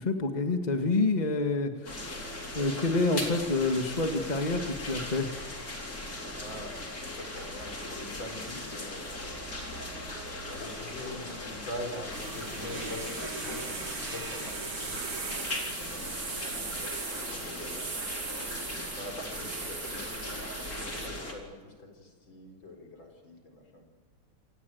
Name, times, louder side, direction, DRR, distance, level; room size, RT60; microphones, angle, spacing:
voice 1, 0.0-5.3, left 3 dB, 20° left, 5 dB, 1.9 m, -28 dB
Rain Draining into concrete at night, 1.8-21.3, left 1 dB, 45° left, 4.6 m, -39 dB
voice 2, 6.3-9.4 10.4-15.0 15.8-18.2 18.9-23.9, left 1 dB, 75° left, 4 dB, 5.3 m, -44 dB
sound 1, 12.1-21.1, right 5 dB, 85° right, 3.1 m, -39 dB
27.5 x 18.5 x 9.4 m, 1.4 s
omnidirectional pair, 2.2 m